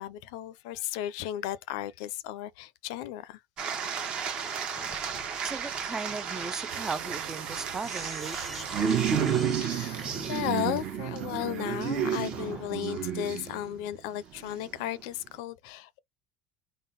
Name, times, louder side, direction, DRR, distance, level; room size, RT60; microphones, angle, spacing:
voice 1, 0.0-3.4 9.6-16.0, left 12 dB, 85° left, 0.5 m, -35 dB
sound 1, 3.6-13.9 14.4-14.7, right 7 dB, 40° right, 0.9 m, -32 dB
Sink (filling or washing), 4.8-12.8, equal, ahead, 0.8 m, -47 dB
voice 2, 5.4-8.7, right 4 dB, 15° right, 0.3 m, -37 dB
sound 2, 6.6-12.7, right 12 dB, 75° right, 0.5 m, -47 dB
3.7 x 2.1 x 3.9 m
cardioid pair, 145°, 3 cm